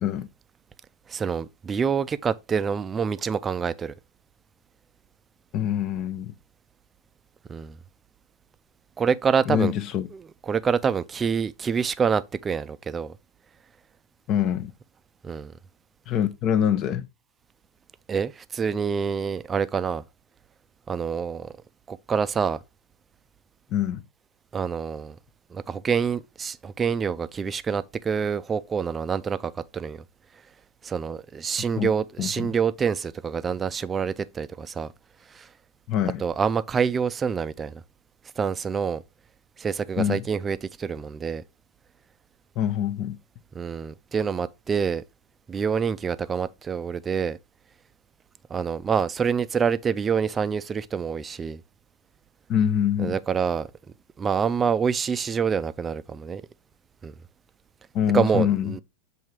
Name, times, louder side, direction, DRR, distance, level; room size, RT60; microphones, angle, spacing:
voice 1, 1.1-3.9 7.5-7.8 9.0-9.7 10.1-13.1 15.2-15.5 18.1-20.0 20.9-21.5 21.9-22.6 24.5-25.2 25.5-30.0 30.8-34.9 35.3-35.5 36.2-37.8 38.4-39.0 39.6-41.4 43.5-45.0 45.5-47.4 48.5-51.6 53.0-53.7 54.2-56.4 57.0-57.1 58.1-58.8, right 6 dB, 25° right, 0.4 m, -26 dB
voice 2, 5.5-6.3 9.5-10.1 14.3-14.7 16.1-17.1 23.7-24.0 31.8-31.9 32.2-32.5 35.9-36.2 40.0-40.2 42.6-43.2 52.5-53.2 57.9-58.7, left 9 dB, 45° left, 0.8 m, -25 dB
7.3 x 2.8 x 4.6 m
hypercardioid pair, 115°, 0 cm